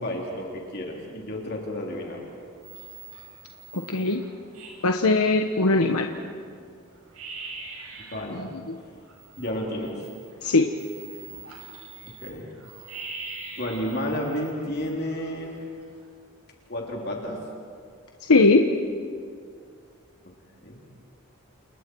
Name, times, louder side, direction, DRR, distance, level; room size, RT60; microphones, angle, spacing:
voice 1, 0.0-2.2 8.1-8.4 9.4-10.0 12.2-12.5 13.6-15.6 16.7-17.4 20.6-20.8, equal, 45° left, -1 dB, 3.4 m, -31 dB
sound 1, 1.9-2.3 2.6-6.1 6.5-6.6 6.9-8.3 8.7-16.1, right 4 dB, 85° right, 7.0 m, -43 dB
voice 2, 3.7-4.3 4.8-6.1 10.4-10.7 18.3-18.7, left 3 dB, 90° left, 4 dB, 1.2 m, -19 dB
29.5 x 28.5 x 4.7 m, 2.2 s
head